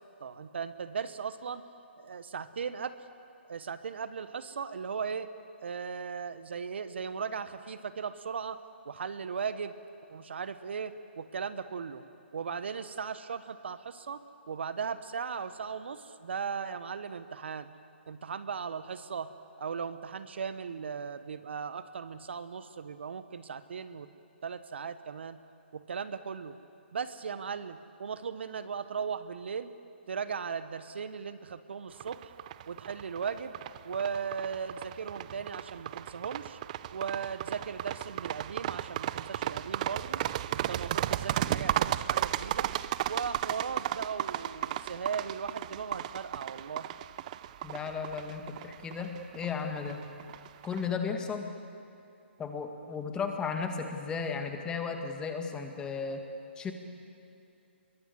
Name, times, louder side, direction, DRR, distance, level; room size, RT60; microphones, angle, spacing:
voice 1, 0.2-1.6 2.0-3.0 3.5-5.3 5.6-8.6 8.8-9.7 10.1-12.0 12.3-14.2 14.5-17.7 18.1-19.3 19.6-24.1 24.4-25.4 25.7-26.6 26.9-29.7 30.1-32.3 32.7-33.5 33.8-36.6 36.9-40.2 40.5-42.7 43.1-46.9, right 6 dB, 65° right, 12 dB, 1.2 m, -37 dB
sound 1, 32.0-50.8, right 13 dB, 40° right, 0.6 m, -35 dB
voice 2, 47.6-50.0 50.6-51.5 52.4-56.2 56.6-56.7, left 5 dB, 15° left, 5 dB, 2.0 m, -35 dB
26.0 x 22.5 x 8.0 m, 2.6 s
hypercardioid pair, 140°, 6 cm